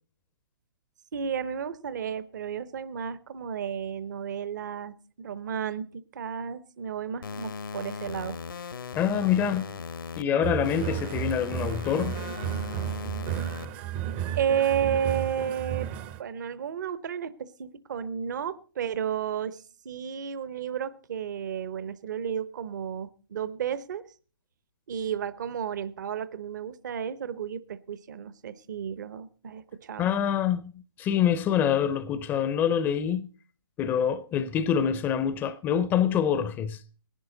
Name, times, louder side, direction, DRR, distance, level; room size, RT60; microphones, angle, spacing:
voice 1, 1.1-8.4 14.3-15.9 16.2-24.0 24.9-30.1, right 8 dB, 55° right, 0.8 m, -32 dB
sound 1, 7.2-10.2 10.6-13.6, left 5 dB, 75° left, 1.1 m, -38 dB
voice 2, 9.0-9.7 10.2-12.2 30.0-30.7 31.0-33.3 33.8-36.8, left 8 dB, 15° left, 0.5 m, -25 dB
sound 2, 10.4-16.2, right 11 dB, 30° right, 0.6 m, -33 dB
19.0 x 11.0 x 3.9 m
figure-of-eight pair, 130°, 12 cm